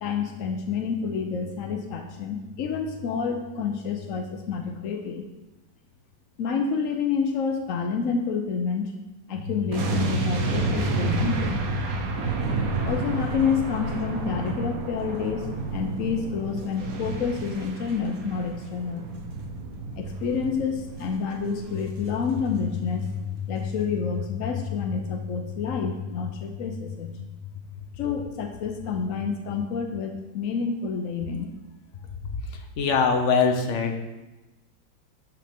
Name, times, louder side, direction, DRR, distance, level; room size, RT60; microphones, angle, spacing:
voice 1, 0.0-5.2 6.4-8.9 9.3-11.6 12.8-19.1 20.0-27.1 28.0-31.5, left 6 dB, 85° left, 4 dB, 0.7 m, -28 dB
sound 1, 9.7-22.9 23.1-23.3, right 3 dB, 50° right, 1.3 m, -30 dB
voice 2, 32.8-34.0, left 5 dB, 55° left, 4 dB, 0.8 m, -22 dB
11.5 x 6.4 x 3.6 m, 1.1 s
omnidirectional pair, 2.3 m